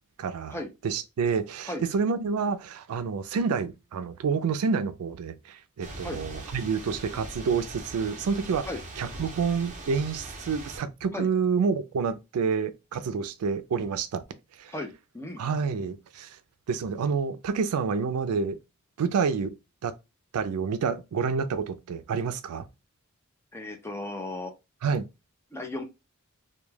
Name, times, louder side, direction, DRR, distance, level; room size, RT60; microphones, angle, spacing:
voice 1, 0.2-0.6 0.8-8.7 9.0-14.2 14.6-14.7 15.4-16.4 16.7-18.6 19.0-19.6 19.8-19.9 20.3-22.6 24.8-25.1, right 5 dB, 85° right, 0.4 m, -28 dB
Thunder / Rain, 5.8-10.8, right 2 dB, 35° right, 0.7 m, -41 dB
voice 2, 14.7-15.4 23.5-24.5 25.5-25.8, left 2 dB, 10° left, 0.5 m, -35 dB
2.2 x 2.2 x 3.2 m
head